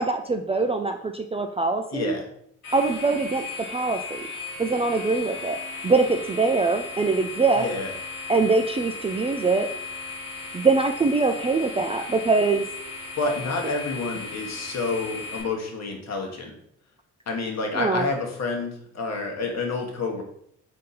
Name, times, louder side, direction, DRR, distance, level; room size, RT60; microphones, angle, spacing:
voice 1, 0.0-2.2 2.7-4.2 4.6-5.6 5.8-7.7 8.3-9.7 10.5-12.6 17.7-18.0, right 3 dB, 20° right, 5 dB, 0.3 m, -23 dB
voice 2, 1.9-2.3 7.6-7.9 13.1-16.6 17.3-20.2, left 3 dB, 45° left, 1 dB, 1.2 m, -29 dB
sound 1, 2.6-15.4, left 4 dB, 75° left, 1.3 m, -36 dB
3.7 x 2.8 x 3.9 m, 0.68 s
hypercardioid pair, 45°, 36 cm